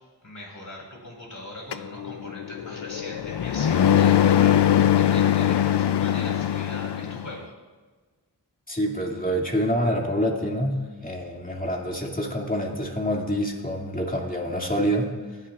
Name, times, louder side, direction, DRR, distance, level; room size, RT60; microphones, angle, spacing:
voice 1, 0.2-7.5, left 1 dB, 45° left, -2 dB, 4.8 m, -40 dB
sound 1, 1.7-7.3, left 10 dB, 75° left, 0.5 m, -21 dB
voice 2, 8.7-15.4, equal, 20° left, -1 dB, 2.5 m, -27 dB
26.5 x 10.5 x 2.5 m, 1.4 s
wide cardioid pair, 60°, 42 cm